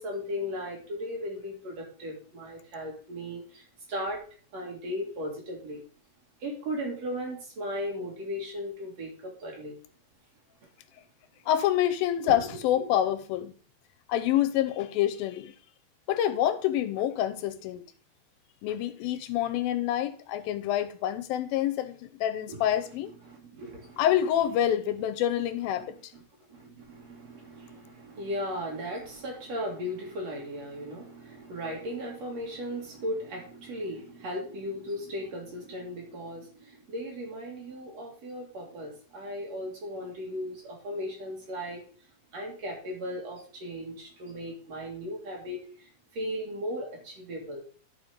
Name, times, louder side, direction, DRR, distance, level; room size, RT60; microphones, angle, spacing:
voice 1, 0.0-3.6 3.9-4.2 4.5-5.8 6.4-9.8 12.4-12.5 12.7-12.9 22.5-24.0 25.7-26.2 26.5-41.8 42.3-45.6 46.1-47.6, equal, 50° right, 2.9 m, -37 dB
voice 2, 11.5-13.5 14.1-15.5 16.1-17.8 18.6-23.1 24.0-26.0, left 11 dB, 80° left, 2.3 m, -27 dB
11.5 x 5.0 x 4.9 m
omnidirectional pair, 4.3 m